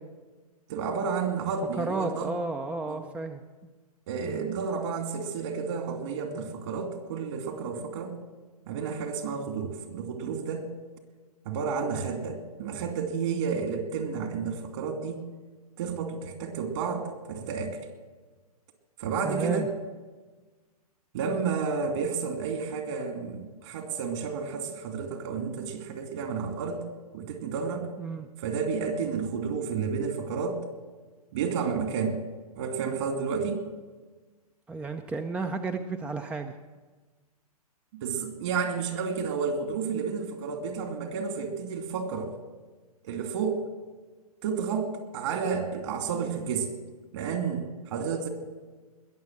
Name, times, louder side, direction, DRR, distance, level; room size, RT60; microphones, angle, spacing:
voice 1, 0.7-2.3 2.9-3.0 4.1-8.1 8.7-10.7 11.4-15.3 15.8-17.8 19.0-19.7 21.1-26.8 27.1-27.9 28.4-30.6 31.3-32.2 32.6-33.6 38.0-42.3 43.0-43.6 44.4-46.7 47.1-48.3, right 5 dB, 55° right, 5 dB, 2.8 m, -31 dB
voice 2, 1.8-3.4 4.2-4.5 19.2-19.7 28.0-28.3 34.7-36.5, right 3 dB, 5° right, 7 dB, 0.5 m, -32 dB
21.0 x 7.1 x 7.4 m, 1.3 s
figure-of-eight pair, 120°, 19 cm